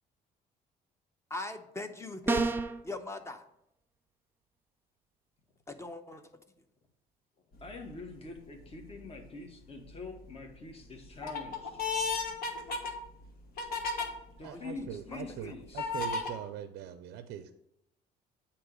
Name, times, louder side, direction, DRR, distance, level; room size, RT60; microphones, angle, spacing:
voice 1, 1.3-2.4 2.8-3.4 5.7-6.2 14.4-15.2, left 2 dB, 15° left, 7 dB, 0.8 m, -40 dB
sound 1, 2.3-2.8, right 3 dB, 10° right, 0.5 m, -28 dB
sound 2, 7.6-8.0 8.6-9.2 9.7-10.3 10.8-14.1 14.7-14.8 15.8-16.3, left 4 dB, 60° left, 1.2 m, -34 dB
voice 2, 7.6-11.8 14.4-15.9, left 3 dB, 35° left, 4 dB, 1.2 m, -45 dB
voice 3, 14.4-17.5, right 10 dB, 85° right, 9 dB, 0.5 m, -42 dB
8.6 x 2.9 x 6.3 m, 0.78 s
cardioid pair, 110°, 17 cm